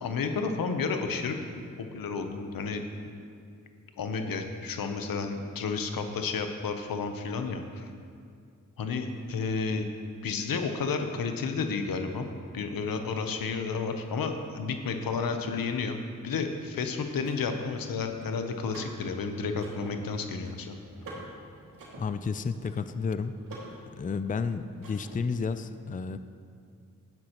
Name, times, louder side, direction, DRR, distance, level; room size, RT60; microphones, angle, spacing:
voice 1, 0.0-2.8 4.0-7.9 8.8-9.9 10.2-12.3 12.5-16.0 16.2-20.8, left 4 dB, 85° left, 6 dB, 0.9 m, -31 dB
Car / Mechanisms, 16.5-25.4, right 1 dB, 75° right, 2.4 m, -49 dB
voice 2, 22.0-23.3 24.0-26.2, left 5 dB, 25° left, 11 dB, 0.4 m, -31 dB
12.0 x 9.6 x 3.0 m, 2.3 s
cardioid pair, 45°, 34 cm